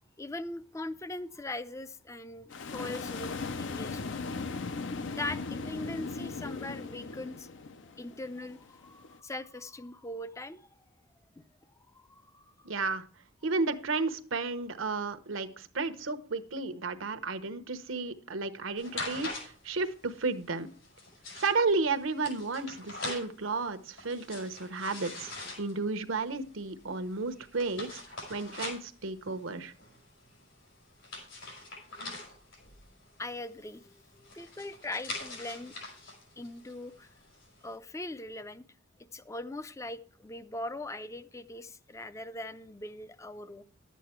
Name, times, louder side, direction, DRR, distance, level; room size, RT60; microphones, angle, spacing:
voice 1, 0.2-4.3 5.2-7.5 8.0-10.7 11.9-12.7 33.2-35.7 36.4-37.1 37.6-38.7 39.1-43.6, left 2 dB, 15° left, 0.5 m, -41 dB
sound 1, 2.5-9.2, left 4 dB, 65° left, 0.6 m, -38 dB
voice 2, 12.6-13.0 13.4-20.7 21.4-28.0 28.3-29.7, right 3 dB, 80° right, 1.0 m, -33 dB
sound 2, 18.8-37.7, left 2 dB, 80° left, 5.1 m, -44 dB
11.5 x 8.3 x 4.4 m
head